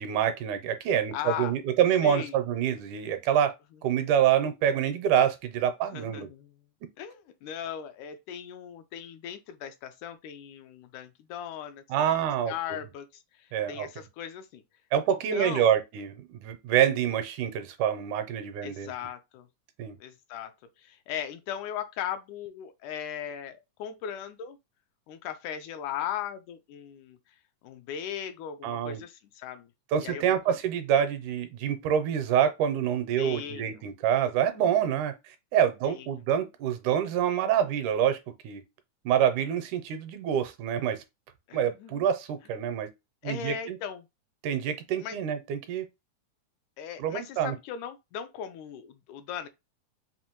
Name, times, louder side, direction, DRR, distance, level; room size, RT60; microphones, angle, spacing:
voice 1, 0.0-3.5 3.8-6.3 11.9-12.8 13.5-13.9 14.9-18.9 19.8-20.0 28.6-29.0 29.9-38.2 38.4-38.6 39.1-41.0 41.5-42.9 43.2-43.8 44.4-45.9 47.0-47.5, right 9 dB, 80° right, 2.0 m, -26 dB
voice 2, 1.1-1.5 2.0-2.4 5.9-6.6 7.0-12.1 12.5-14.6 15.1-15.7 18.6-19.5 20.0-20.5 20.8-24.6 25.1-27.2 27.6-29.7 30.0-30.5 33.2-33.8 35.8-36.2 41.5-42.1 43.2-44.1 45.0-45.2 46.8-49.5, left 9 dB, 80° left, 1.9 m, -38 dB
5.4 x 2.5 x 2.9 m
omnidirectional pair, 3.7 m